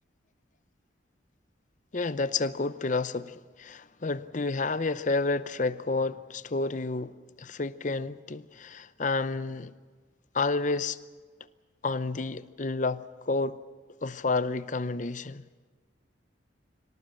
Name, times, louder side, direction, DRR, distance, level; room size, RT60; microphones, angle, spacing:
voice 1, 1.9-9.7 10.3-11.0 11.8-13.6 14.0-15.5, left 3 dB, 40° left, 0.7 m, -30 dB
24.5 x 18.5 x 7.7 m
head